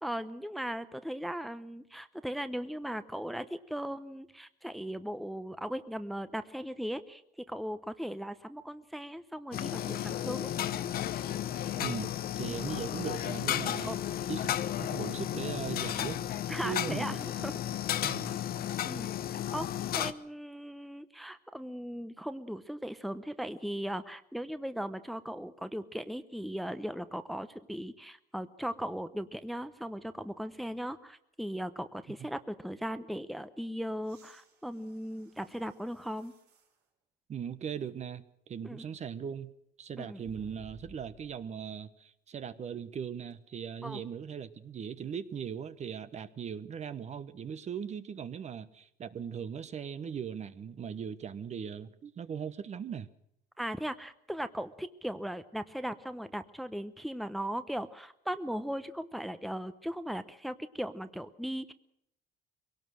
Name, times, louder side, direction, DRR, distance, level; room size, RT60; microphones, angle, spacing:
voice 1, 0.0-7.2 7.5-10.5 12.5-12.7 13.8-14.1 16.5-17.6 18.8-19.7 19.9-36.3 38.6-38.8 40.0-40.2 43.8-44.0 53.6-61.7, equal, ahead, 11 dB, 0.8 m, -38 dB
sound 1, 9.5-20.1, left 11 dB, 60° left, 0.9 m, -33 dB
voice 2, 11.8-14.0 14.3-16.2 16.6-17.2 18.0-18.4 32.2-32.3 37.3-39.5 39.8-53.1, right 7 dB, 40° right, 13 dB, 1.0 m, -39 dB
sound 2, 34.0-36.8 37.4-37.5 40.2-41.5 43.3-43.4, right 3 dB, 85° right, 5.0 m, -57 dB
22.5 x 18.0 x 6.4 m, 0.75 s
cardioid pair, 110°, 17 cm